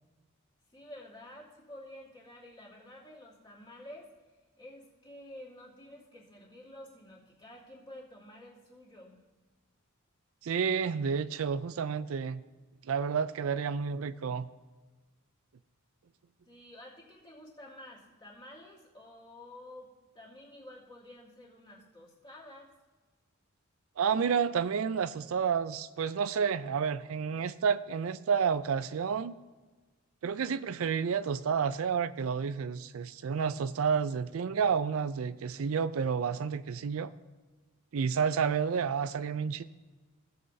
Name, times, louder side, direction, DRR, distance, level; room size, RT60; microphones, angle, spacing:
voice 1, 0.7-4.1 4.6-9.2 16.5-19.9 20.1-22.7, left 1 dB, 25° left, 2.7 m, -50 dB
voice 2, 10.4-12.4 12.8-14.5 24.0-29.3 30.2-37.1 37.9-39.6, right 6 dB, 75° right, 0.4 m, -30 dB
17.0 x 7.9 x 2.7 m
head